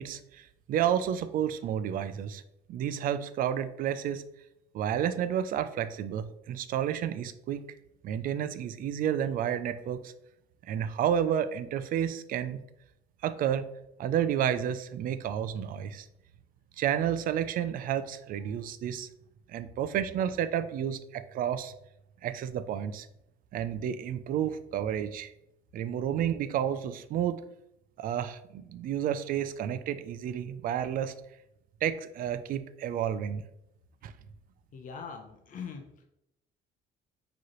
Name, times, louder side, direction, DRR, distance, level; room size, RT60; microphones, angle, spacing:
voice 1, 0.0-2.4 2.7-4.2 4.7-7.7 8.0-10.1 10.7-12.6 13.2-13.6 14.0-16.1 16.8-19.1 19.5-21.7 22.2-23.1 23.5-25.3 25.7-27.4 28.0-31.1 31.8-33.4 34.0-34.1, right 9 dB, 55° right, 12 dB, 0.4 m, -31 dB
voice 2, 34.7-36.0, left 6 dB, 50° left, 4 dB, 0.6 m, -42 dB
4.7 x 3.1 x 3.0 m, 0.83 s
cardioid pair, 110°, 17 cm